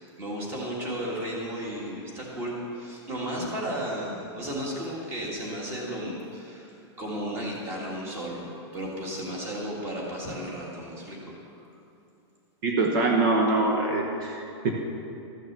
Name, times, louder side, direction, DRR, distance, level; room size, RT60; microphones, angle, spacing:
voice 1, 0.0-11.4, equal, 15° right, -2 dB, 1.8 m, -34 dB
voice 2, 12.6-14.7, right 2 dB, 50° right, 1 dB, 1.1 m, -24 dB
13.5 x 6.4 x 7.4 m, 2.6 s
supercardioid pair, 175°, 15 cm